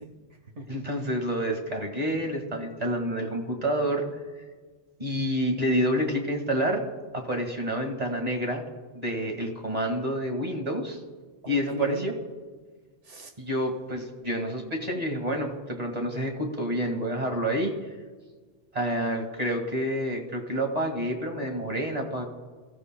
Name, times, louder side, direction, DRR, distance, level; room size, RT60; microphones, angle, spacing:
voice 1, 0.0-0.9 11.4-12.1 13.0-13.4 16.1-16.2, right 1 dB, 75° right, 4 dB, 1.9 m, -41 dB
voice 2, 0.7-4.0 5.0-6.8 7.1-8.6 8.9-11.0 11.5-12.1 13.4-17.8 18.7-22.2, equal, 35° right, 2 dB, 2.0 m, -28 dB
25.0 x 14.0 x 2.2 m, 1.4 s
omnidirectional pair, 1.2 m